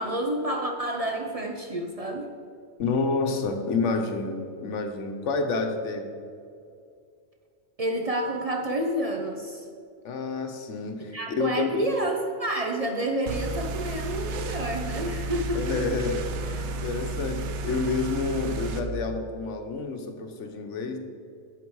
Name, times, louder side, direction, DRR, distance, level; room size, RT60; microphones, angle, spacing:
voice 1, 0.0-2.3 7.8-9.7 11.1-15.8, right 1 dB, 40° right, 2 dB, 0.6 m, -29 dB
voice 2, 2.8-6.1 10.0-11.9 15.5-21.0, left 4 dB, 80° left, 5 dB, 1.2 m, -29 dB
sound 1, 13.3-18.8, right 2 dB, 75° right, 1.0 m, -32 dB
8.7 x 6.9 x 4.7 m, 2.4 s
omnidirectional pair, 1.2 m